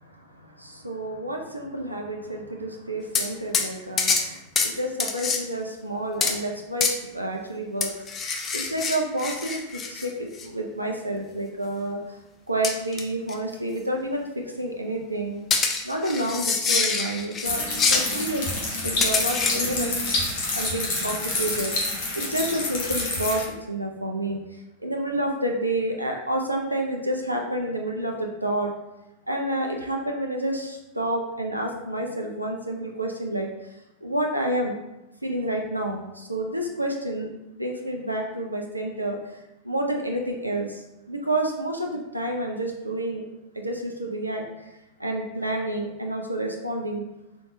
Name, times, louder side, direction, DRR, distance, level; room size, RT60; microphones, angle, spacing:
voice 1, 0.0-7.9 8.5-12.2 12.5-15.4 15.8-17.6 17.9-18.5 18.8-19.9 20.5-21.7 22.1-28.7 29.3-33.5 34.0-34.7 35.2-39.4 39.6-43.2 43.5-44.7 45.0-47.0, right 1 dB, 85° right, 1 dB, 0.3 m, -29 dB
sound 1, 3.1-3.3 3.5-3.7 4.0-4.3 4.6-4.7 5.0-5.4 6.2-6.4 6.8-7.0 7.8-10.1 10.4-10.5 12.6-13.0 13.3-13.4 15.5-17.5 17.8-18.1 19.0-19.6, left 5 dB, 25° left, 0.3 m, -25 dB
sound 2, 17.4-23.4, left 2 dB, 45° left, 0.9 m, -28 dB
3.6 x 2.2 x 2.6 m, 0.94 s
figure-of-eight pair, 90°, 0 cm